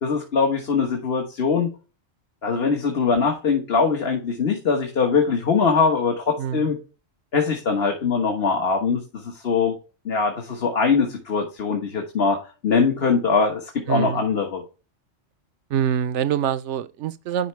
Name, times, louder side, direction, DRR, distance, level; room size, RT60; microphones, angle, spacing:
voice 1, 0.0-1.7 2.4-6.8 7.3-9.7 10.0-14.6, left 5 dB, 55° left, 1.6 m, -22 dB
voice 2, 6.4-6.7 13.9-14.3 15.7-17.5, right 9 dB, 75° right, 1.0 m, -25 dB
11.0 x 4.4 x 3.1 m
omnidirectional pair, 1.2 m